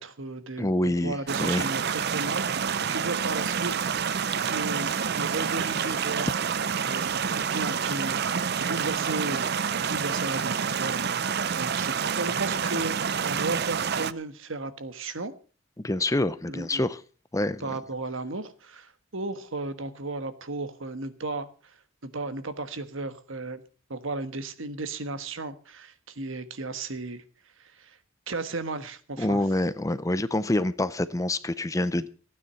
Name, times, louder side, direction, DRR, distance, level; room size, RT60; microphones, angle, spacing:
voice 1, 0.0-3.7 4.5-6.3 6.9-13.0 13.2-15.3 16.5-16.9 17.6-21.8 22.0-23.6 23.9-27.2 27.6-28.0 28.3-29.4, right 3 dB, 70° right, 1.4 m, -35 dB
voice 2, 0.6-1.7 15.8-17.0 17.3-17.8 29.2-32.1, left 1 dB, 15° left, 0.5 m, -26 dB
sound 1, 1.3-14.1, right 7 dB, 50° right, 0.5 m, -28 dB
15.5 x 9.5 x 5.7 m
head